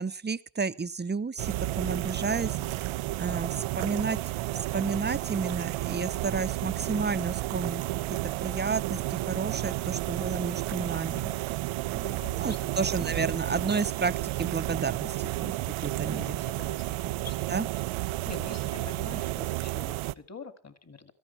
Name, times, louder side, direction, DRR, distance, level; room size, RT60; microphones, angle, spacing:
voice 1, 0.0-2.5 3.2-4.2 4.5-7.8 8.1-11.2 11.9-12.0 12.3-15.6 15.8-16.4 17.5-17.7, right 4 dB, 20° right, 13 dB, 0.8 m, -31 dB
sound 1, 1.4-20.1, right 17 dB, 80° right, 0.6 m, -32 dB
voice 2, 2.1-2.8 8.1-8.2 10.7-11.4 12.0-13.0 16.1-17.7 18.2-21.1, left 4 dB, 30° left, 10 dB, 2.3 m, -46 dB
17.5 x 14.0 x 4.4 m, 0.38 s
supercardioid pair, 55°, 49 cm